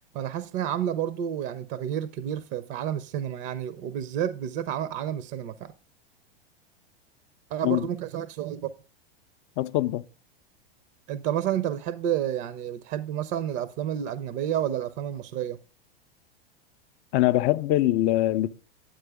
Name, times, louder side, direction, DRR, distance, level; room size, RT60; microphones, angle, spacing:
voice 1, 0.1-5.7 7.5-8.7 11.1-15.6, right 10 dB, 40° right, 0.6 m, -30 dB
voice 2, 9.6-10.0 17.1-18.5, left 15 dB, 40° left, 0.4 m, -23 dB
10.0 x 7.7 x 3.4 m
hypercardioid pair, 100°, 30 cm